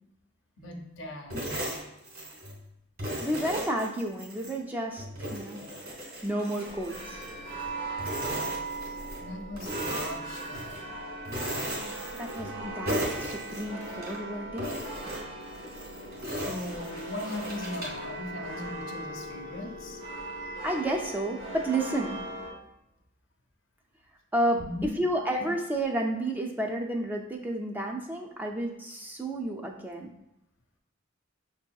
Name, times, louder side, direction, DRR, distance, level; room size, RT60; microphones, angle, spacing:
voice 1, 0.6-1.4 9.2-10.8 16.2-20.0 24.6-24.9 25.4-25.5, left 1 dB, 70° left, 3 dB, 0.6 m, -39 dB
sound 1, 1.3-2.6 3.0-4.6 5.0-7.7 8.0-9.2 9.6-10.8 11.3-12.6 12.9-14.2 14.6-18.1, equal, 50° right, 1.4 m, -36 dB
voice 2, 3.2-5.6 6.2-7.2 11.6-14.9 20.6-22.2 24.3-30.1, right 1 dB, 10° right, 1 dB, 0.3 m, -31 dB
sound 2, 6.6-22.5, right 2 dB, 65° right, 0.8 m, -39 dB
6.0 x 2.7 x 2.3 m, 0.87 s
head